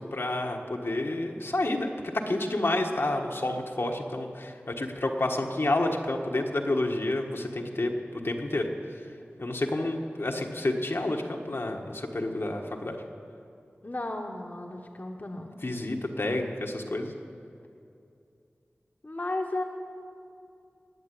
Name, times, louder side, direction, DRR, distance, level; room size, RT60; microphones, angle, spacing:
voice 1, 0.0-8.7 9.4-13.0 15.6-17.1, left 2 dB, 65° left, 1 dB, 1.5 m, -29 dB
voice 2, 13.8-15.5 19.0-19.6, left 2 dB, 45° left, 2 dB, 1.3 m, -34 dB
19.0 x 7.3 x 10.0 m, 2.6 s
wide cardioid pair, 50°, 4 cm